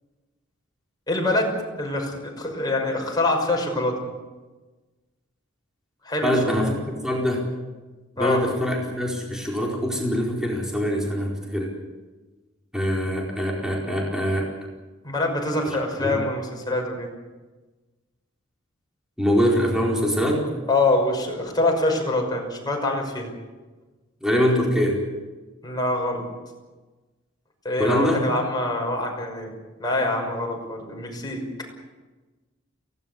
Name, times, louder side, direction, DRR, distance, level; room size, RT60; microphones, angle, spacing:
voice 1, 1.1-4.0 6.0-6.6 8.2-8.4 15.0-17.1 20.7-23.3 25.6-26.2 27.6-29.5 29.8-31.4, left 2 dB, 20° left, 0 dB, 5.9 m, -25 dB
voice 2, 6.2-7.5 8.2-11.7 12.7-14.5 16.0-16.2 19.2-20.4 24.2-25.0 27.8-28.2, equal, 5° right, -2 dB, 4.5 m, -23 dB
23.5 x 17.5 x 8.4 m, 1.2 s
head